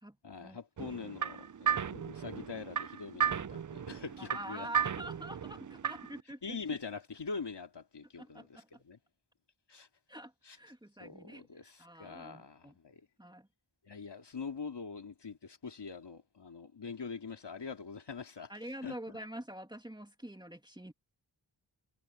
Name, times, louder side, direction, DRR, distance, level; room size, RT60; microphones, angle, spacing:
voice 1, 0.2-4.7 6.4-9.0 9.7-9.9 10.4-10.6 11.0-13.0 13.9-18.5 18.8-19.0, left 5 dB, 65° left, 2.6 m, -43 dB
sound 1, 0.8-6.2, right 8 dB, 45° right, 0.6 m, -35 dB
voice 2, 0.9-1.2 4.2-6.6 8.2-8.7 10.1-12.7 13.2-13.5 18.5-20.9, right 1 dB, 10° right, 2.1 m, -46 dB
wide cardioid pair, 75°, 45 cm